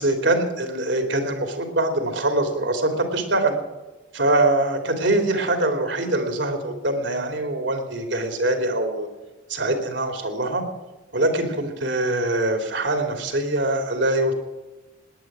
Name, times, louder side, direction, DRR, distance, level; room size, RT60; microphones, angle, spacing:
voice 1, 0.0-3.6 4.1-9.1 9.5-10.6 11.1-14.3, right 1 dB, 60° right, 6 dB, 2.8 m, -23 dB
18.5 x 10.5 x 7.4 m, 1.1 s
head